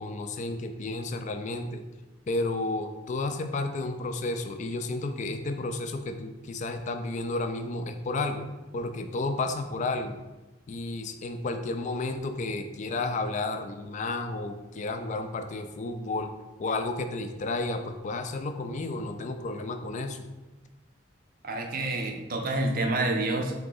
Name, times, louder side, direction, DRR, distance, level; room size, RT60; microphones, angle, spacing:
voice 1, 0.0-1.8 2.3-8.4 8.7-10.2 10.7-16.3 16.6-20.2, left 2 dB, 35° left, 7 dB, 0.3 m, -32 dB
voice 2, 21.4-23.5, right 2 dB, 45° right, 2 dB, 0.5 m, -28 dB
3.9 x 2.9 x 3.7 m, 1.1 s
head